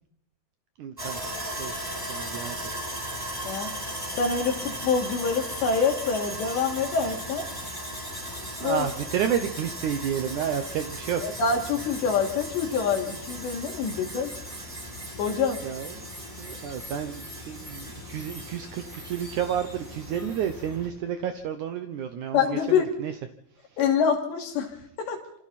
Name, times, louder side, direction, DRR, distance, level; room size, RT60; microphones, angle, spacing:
voice 1, 0.8-1.2 1.6-1.8 2.1-2.8 8.1-8.2 8.6-11.3 15.6-16.1 16.4-23.2 23.7-23.8, right 9 dB, 80° right, 8 dB, 1.7 m, -31 dB
Sawing, 1.0-20.9, equal, 10° right, 7.1 m, -37 dB
voice 2, 4.2-7.5 8.6-8.9 11.2-14.3 15.2-15.6 22.3-22.9 23.8-24.7 25.0-25.2, left 6 dB, 85° left, 3 dB, 4.9 m, -26 dB
27.5 x 25.5 x 4.2 m, 0.70 s
omnidirectional pair, 4.9 m